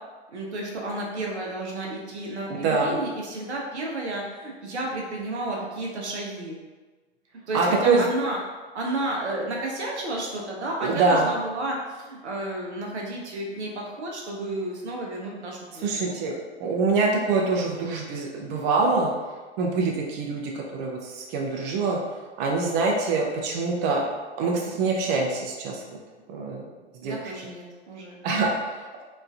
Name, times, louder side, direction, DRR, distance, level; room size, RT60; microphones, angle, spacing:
voice 1, 0.3-6.6 7.5-8.4 8.7-16.2 27.0-28.2, right 2 dB, 80° right, -1 dB, 0.7 m, -32 dB
voice 2, 2.5-3.0 7.5-8.0 10.8-11.3 15.8-16.3 16.6-19.1 19.6-20.4 20.7-22.0 22.4-24.0 24.4-26.0 26.3-26.7 27.0-27.1 28.2-29.0, right 3 dB, 35° right, -1 dB, 0.5 m, -24 dB
3.0 x 2.4 x 2.4 m, 1.3 s
figure-of-eight pair, 90°, 33 cm